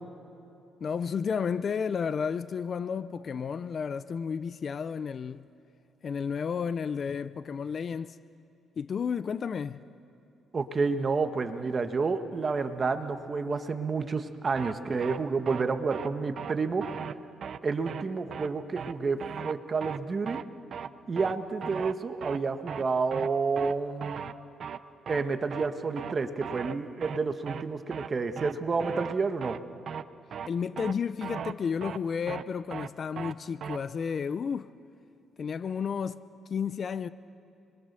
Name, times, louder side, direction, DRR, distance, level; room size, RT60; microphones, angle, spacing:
voice 1, 0.8-5.4 6.0-8.2 8.8-9.8 30.5-34.7 35.4-36.2 36.5-37.1, left 6 dB, 50° left, 0.6 m, -32 dB
voice 2, 10.5-16.9 17.6-20.4 21.1-24.3 25.1-29.6, right 4 dB, 35° right, 1.5 m, -30 dB
sound 1, 14.6-14.7 15.0-15.2 15.5-15.6 15.9-16.1 16.4-16.5 16.8-17.1 17.4-17.6 17.9-18.0 18.3-18.5 18.8-18.9 19.2-19.5 19.8-20.0 20.3-20.4 20.7-20.9 21.2-21.3 21.6-21.9 22.2-22.4 22.7-22.8 23.1-23.3 23.6-23.7 24.0-24.3 24.6-24.8 25.1-25.2 25.5-25.7 26.0-26.1 26.4-26.7 27.0-27.2 27.5-27.6 27.9-28.1 28.4-28.5 28.8-29.1 29.4-29.6 29.9-30.0 30.3-30.5 30.8-30.9 31.2-31.5 31.8-32.0 32.3-32.4 32.7-32.9 33.2-33.3 33.6-33.8, right 7 dB, 60° right, 0.7 m, -37 dB
30.0 x 22.0 x 6.9 m
cardioid pair, 90°, 0 cm